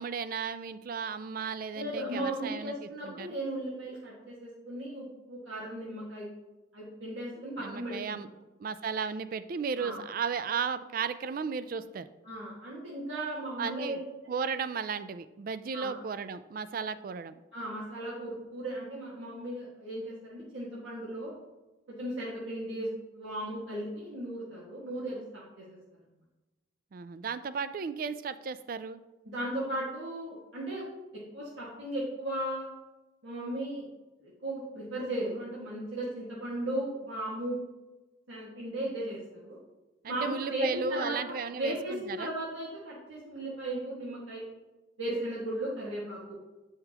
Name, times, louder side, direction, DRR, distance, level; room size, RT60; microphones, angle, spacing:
voice 1, 0.0-3.3 7.6-8.3 8.6-12.1 13.6-14.0 14.3-17.4 26.9-29.0 40.0-42.3, right 5 dB, 45° right, 13 dB, 0.3 m, -35 dB
voice 2, 1.7-6.3 6.7-8.2 9.8-10.0 12.2-14.0 15.7-16.0 17.5-21.3 21.9-22.9 23.1-25.8 29.2-30.8 31.3-32.7 33.2-33.8 34.2-37.6 38.3-39.6 40.1-41.2 41.6-44.4 45.0-46.4, right 1 dB, 85° right, -7 dB, 1.6 m, -36 dB
7.9 x 5.7 x 2.9 m, 1.1 s
head